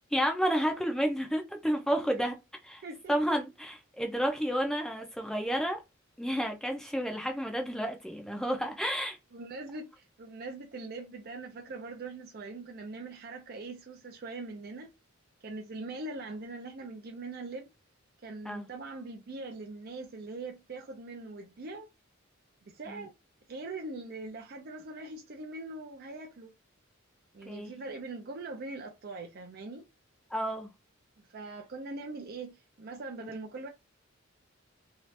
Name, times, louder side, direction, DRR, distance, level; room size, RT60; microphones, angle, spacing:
voice 1, 0.1-2.3 2.7-2.8 3.1-5.8 6.2-9.2 18.5-18.7 22.9-23.0 27.5-27.7 30.3-30.7 33.2-33.3, equal, 5° left, 0.5 m, -31 dB
voice 2, 2.8-3.4 8.5-8.7 9.3-14.9 15.4-17.7 18.2-21.9 22.6-23.1 23.5-26.5 27.3-29.8 31.3-33.7, right 3 dB, 50° right, 0.5 m, -42 dB
2.8 x 2.4 x 3.2 m
head